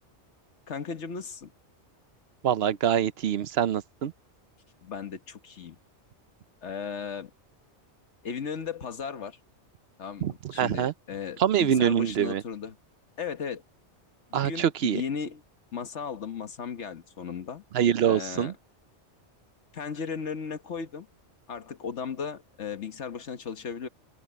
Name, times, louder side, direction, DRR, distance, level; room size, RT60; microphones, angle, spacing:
voice 1, 0.7-1.5 4.8-5.8 6.6-7.3 8.2-9.4 10.0-12.8 13.2-13.6 14.3-15.4 15.7-17.6 18.1-18.5 19.7-21.1 21.5-23.9, left 6 dB, 80° left, 1.6 m, -36 dB
voice 2, 2.4-4.1 10.2-10.9 11.4-12.4 14.3-15.0 17.7-18.5, right 9 dB, 65° right, 0.8 m, -25 dB
open air
omnidirectional pair, 1.2 m